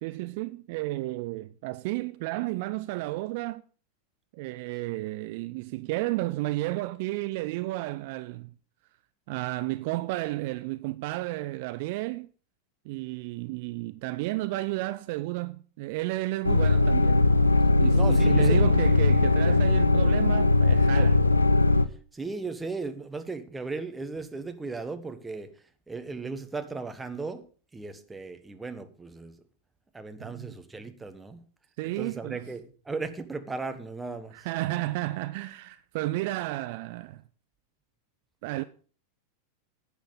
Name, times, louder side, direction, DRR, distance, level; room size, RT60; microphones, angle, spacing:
voice 1, 0.0-3.6 4.3-8.5 9.3-12.3 12.9-17.3 17.8-21.2 30.2-30.6 31.8-32.4 34.3-37.2 38.4-38.6, right 19 dB, 50° right, 0.4 m, -32 dB
sound 1, 16.4-21.8, left 2 dB, 80° left, 0.5 m, -20 dB
voice 2, 17.9-18.7 22.1-25.5 25.9-27.4 27.7-29.4 29.9-31.4 31.8-34.5, right 3 dB, 10° right, 1.3 m, -36 dB
10.5 x 9.0 x 5.3 m
figure-of-eight pair, 90°, 0 cm